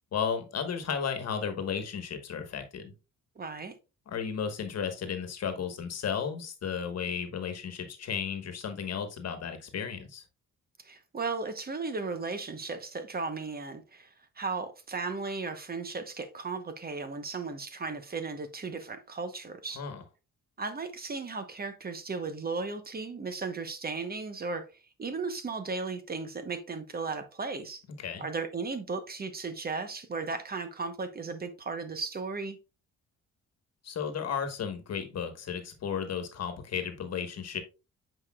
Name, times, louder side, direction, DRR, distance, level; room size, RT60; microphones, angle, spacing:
voice 1, 0.1-2.9 4.1-10.2 19.7-20.0 28.0-28.2 33.8-37.6, left 7 dB, 55° left, 1.4 m, -34 dB
voice 2, 3.4-3.7 10.8-19.8 20.6-24.7 25.0-27.8 28.2-32.6, right 4 dB, 30° right, 1.0 m, -35 dB
8.2 x 5.0 x 2.3 m
cardioid pair, 90°, 30 cm